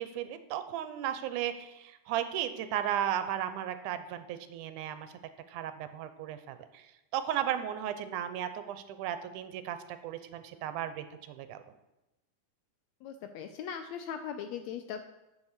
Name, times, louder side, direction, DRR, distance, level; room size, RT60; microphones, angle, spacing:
voice 1, 0.0-5.1 5.5-6.9 7.1-11.6, right 10 dB, 85° right, 10 dB, 2.1 m, -35 dB
voice 2, 13.0-15.0, left 8 dB, 80° left, 8 dB, 1.6 m, -39 dB
7.8 x 7.2 x 6.6 m, 0.96 s
omnidirectional pair, 3.6 m